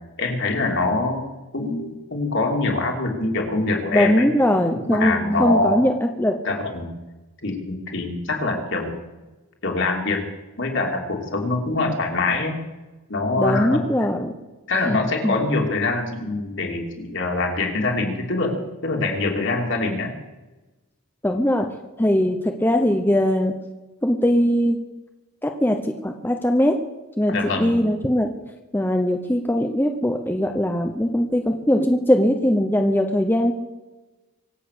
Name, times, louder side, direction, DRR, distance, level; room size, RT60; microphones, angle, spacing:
voice 1, 0.2-4.3 4.7-5.8 6.4-6.9 7.4-9.0 9.6-10.2 10.6-12.5 13.1-13.8 14.7-20.1 27.3-27.8, left 2 dB, 55° left, 2 dB, 2.9 m, -24 dB
voice 2, 3.9-6.4 13.4-14.3 14.8-15.0 15.2-15.4 21.2-21.7 22.0-23.5 24.0-24.8 25.4-26.8 27.2-28.3 28.7-33.5, equal, 10° left, 4 dB, 0.8 m, -20 dB
24.5 x 8.4 x 6.7 m, 1.2 s
head